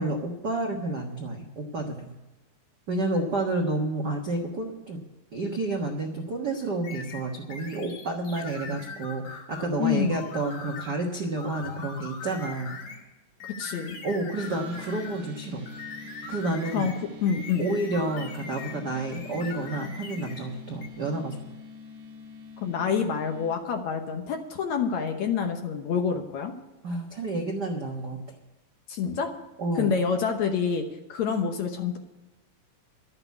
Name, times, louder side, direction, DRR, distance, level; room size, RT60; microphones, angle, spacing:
voice 1, 0.0-2.1 2.9-5.0 5.3-12.8 14.0-15.7 16.3-16.9 17.6-21.5 26.8-28.2 29.6-29.9, right 2 dB, 65° right, 1 dB, 1.0 m, -30 dB
sound 1, 6.8-9.7 10.1-11.0 11.4-13.0 13.4-15.3 15.7-18.8 19.1-20.5 20.8-20.9, left 5 dB, 85° left, 3.8 m, -41 dB
voice 2, 9.8-10.2 13.6-14.0 16.7-16.9 17.2-17.6 22.6-26.6 28.9-29.3 29.8-32.0, left 6 dB, 65° left, 4 dB, 2.0 m, -27 dB
sound 2, 14.4-23.5, left 3 dB, 50° right, 2.3 m, -45 dB
12.5 x 8.9 x 8.2 m, 1.1 s
omnidirectional pair, 4.0 m